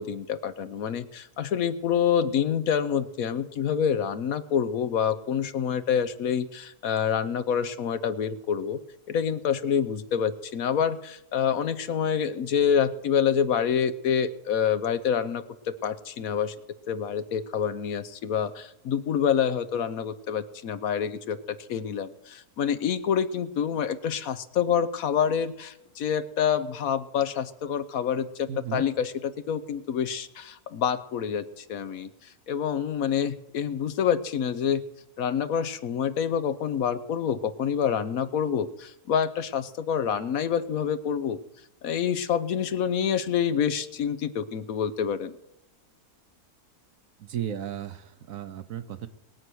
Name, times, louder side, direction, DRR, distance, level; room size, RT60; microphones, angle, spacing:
voice 1, 0.0-8.8 9.1-16.5 16.9-34.8 35.2-41.4 41.8-45.3, left 8 dB, 65° left, 12 dB, 1.2 m, -27 dB
voice 2, 28.5-28.9 47.2-49.1, right 9 dB, 65° right, 10 dB, 1.2 m, -35 dB
21.0 x 8.2 x 6.3 m, 0.84 s
omnidirectional pair, 1.6 m